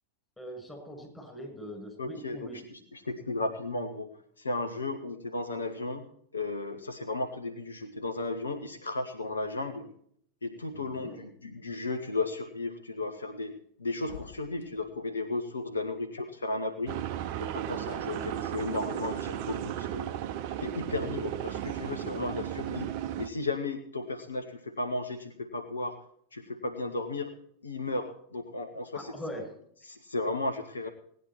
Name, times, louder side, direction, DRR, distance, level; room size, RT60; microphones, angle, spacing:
voice 1, 0.4-2.7 10.7-11.2 28.9-29.5, equal, 10° left, -1 dB, 6.7 m, -42 dB
voice 2, 2.0-4.1 4.4-6.0 6.3-9.9 10.4-17.0 17.4-20.1 20.6-22.9 23.2-26.0 26.3-27.3 27.6-29.1 29.9-30.9, left 2 dB, 75° left, 7 dB, 1.2 m, -34 dB
sound 1, 14.1-14.9 17.8-18.1, left 9 dB, 55° left, 1.3 m, -48 dB
sound 2, 16.9-23.3, right 11 dB, 45° right, 0.6 m, -35 dB
18.0 x 10.0 x 4.5 m, 0.64 s
figure-of-eight pair, 90°, 0 cm